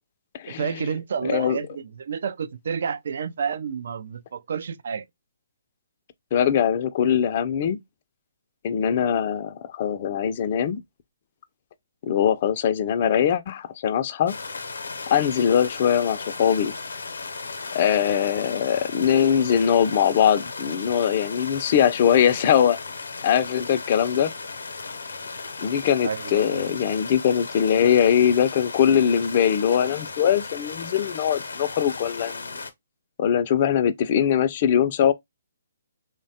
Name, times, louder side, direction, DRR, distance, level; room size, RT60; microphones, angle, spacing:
voice 1, 0.5-5.0 26.0-26.8, right 6 dB, 65° right, 0.3 m, -30 dB
voice 2, 1.2-1.6 6.3-7.8 8.6-10.8 12.0-14.4 15.1-16.7 17.7-22.8 23.2-24.3 25.6-32.4 33.2-35.1, left 9 dB, 40° left, 0.4 m, -21 dB
sound 1, 14.3-32.7, left 4 dB, 85° left, 0.6 m, -36 dB
3.1 x 2.1 x 2.7 m
hypercardioid pair, 145°, 0 cm